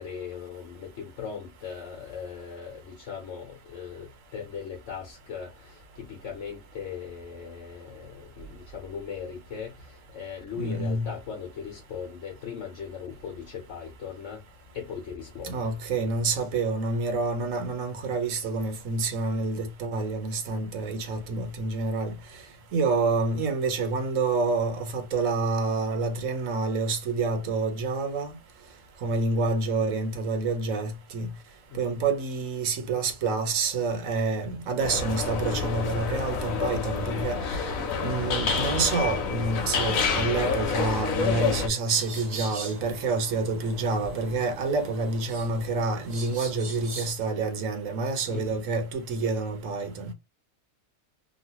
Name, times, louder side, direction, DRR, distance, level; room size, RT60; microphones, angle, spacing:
voice 1, 0.0-14.4 14.7-15.8 20.5-20.9 31.7-32.0 48.3-48.6, left 6 dB, 65° left, 1.1 m, -39 dB
voice 2, 10.6-11.0 15.4-22.1 22.7-28.4 29.0-31.3 31.7-37.6 38.0-50.1, right 3 dB, 75° right, 1.2 m, -28 dB
sound 1, 34.8-41.7, left 5 dB, 85° left, 1.1 m, -28 dB
sound 2, 41.9-47.1, right 3 dB, 45° right, 1.0 m, -40 dB
3.1 x 2.4 x 2.8 m
omnidirectional pair, 1.4 m